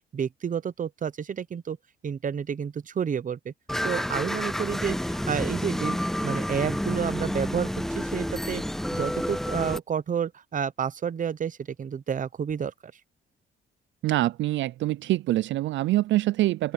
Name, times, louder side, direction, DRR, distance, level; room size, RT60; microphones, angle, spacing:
voice 1, 0.0-1.8 2.0-3.5 3.8-7.7 7.9-8.6 8.9-12.9, right 7 dB, 40° right, 0.9 m, -30 dB
sound 1, 3.7-9.8, equal, ahead, 0.5 m, -29 dB
voice 2, 14.0-16.7, right 16 dB, 70° right, 0.4 m, -25 dB
open air
cardioid pair, 90°, 20 cm